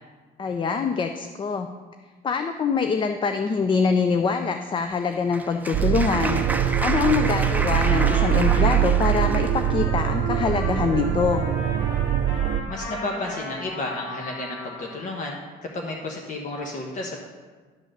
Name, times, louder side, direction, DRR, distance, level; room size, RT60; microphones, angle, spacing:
voice 1, 0.4-1.7 2.2-6.4 6.8-11.4, left 5 dB, 30° left, 7 dB, 0.4 m, -24 dB
Applause, 4.9-9.8, right 2 dB, 10° right, 0.7 m, -31 dB
sound 1, 5.7-12.6, right 11 dB, 50° right, 0.4 m, -23 dB
Trumpet, 7.4-15.2, left 1 dB, 85° left, 2.5 m, -37 dB
voice 2, 12.7-17.2, left 2 dB, 50° left, 0 dB, 1.0 m, -32 dB
10.5 x 3.9 x 6.6 m, 1.4 s
cardioid pair, 110°, 17 cm